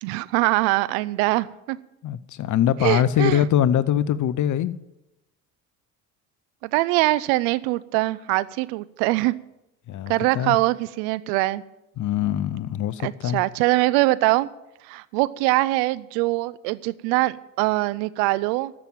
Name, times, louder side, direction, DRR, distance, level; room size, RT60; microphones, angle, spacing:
voice 1, 0.0-1.8 2.8-3.4 6.6-9.3 10.1-11.6 13.0-14.5 14.8-18.7, right 19 dB, 65° right, 18 dB, 0.7 m, -23 dB
voice 2, 2.0-4.8 9.9-10.6 12.0-13.4, left 10 dB, 45° left, 16 dB, 0.7 m, -23 dB
13.5 x 6.1 x 9.2 m, 0.93 s
hypercardioid pair, 55°, 42 cm